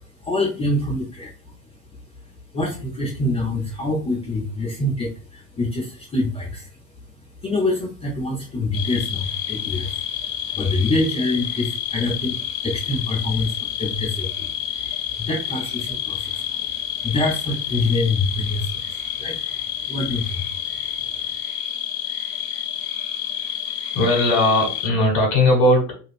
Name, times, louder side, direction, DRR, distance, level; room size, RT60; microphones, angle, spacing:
voice 1, 0.2-1.5 2.5-6.7 7.4-14.5 15.1-16.8 17.0-19.4 19.9-20.5, left 2 dB, 15° left, -3 dB, 0.5 m, -25 dB
sound 1, 8.7-24.9, left 10 dB, 55° left, 0.7 m, -29 dB
voice 2, 23.9-26.0, left 1 dB, 35° left, 1 dB, 1.1 m, -18 dB
2.5 x 2.3 x 3.2 m, 0.38 s
figure-of-eight pair, 75°, 47 cm